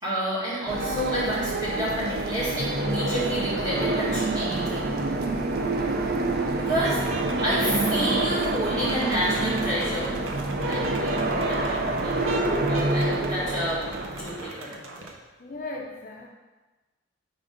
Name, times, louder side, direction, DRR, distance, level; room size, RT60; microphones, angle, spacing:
voice 1, 0.0-4.8 6.6-7.0 7.4-10.1 10.6-13.8 14.1-14.8, equal, 20° right, -9 dB, 1.9 m, -30 dB
sound 1, 0.7-14.4, right 2 dB, 50° right, 0.5 m, -27 dB
sound 2, 6.6-15.2, right 2 dB, 85° right, 0.7 m, -38 dB
voice 2, 15.4-16.3, left 2 dB, 40° left, 0 dB, 0.5 m, -38 dB
5.0 x 3.9 x 5.0 m, 1.2 s
head